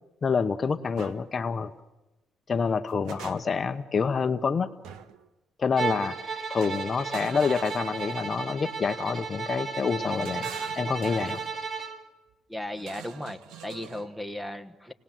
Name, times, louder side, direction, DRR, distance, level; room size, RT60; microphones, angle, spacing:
voice 1, 0.2-1.7 2.5-4.7 5.6-11.4, left 5 dB, 35° left, 9 dB, 1.0 m, -27 dB
sound 1, 0.9-1.2 2.6-3.7 4.8-5.3 6.6-8.4 9.7-11.5 12.8-14.1, right 8 dB, 90° right, 1.3 m, -45 dB
Bowed string instrument, 5.8-12.0, right 5 dB, 35° right, 4.1 m, -34 dB
voice 2, 12.5-14.9, left 1 dB, 5° right, 10 dB, 1.5 m, -36 dB
29.0 x 19.0 x 7.6 m, 1.0 s
cardioid pair, 115°, 0 cm